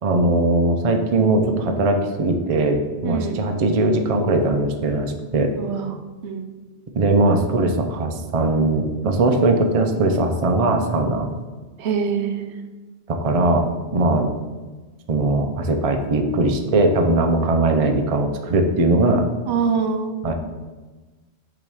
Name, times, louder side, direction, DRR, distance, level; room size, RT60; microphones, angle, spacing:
voice 1, 0.0-5.5 6.9-11.3 13.1-13.7 13.9-14.3 15.1-19.2 20.2-20.3, right 2 dB, 45° right, 4 dB, 0.5 m, -20 dB
voice 2, 3.0-3.4 5.6-5.9 6.2-6.5 11.8-12.6 19.5-20.2, right 6 dB, 70° right, 6 dB, 0.9 m, -24 dB
6.9 x 3.0 x 4.7 m, 1.3 s
omnidirectional pair, 1.2 m